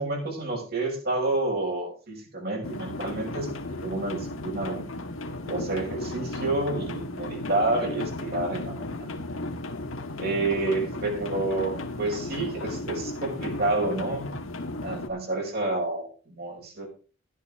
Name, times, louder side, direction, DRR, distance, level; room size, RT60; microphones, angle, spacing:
voice 1, 0.0-4.9 5.4-9.1 10.2-14.5 14.8-16.9, right 2 dB, 50° right, 0 dB, 6.1 m, -29 dB
sound 1, 2.6-15.1, left 2 dB, 85° left, 1.8 m, -35 dB
14.0 x 12.0 x 3.8 m, 0.37 s
head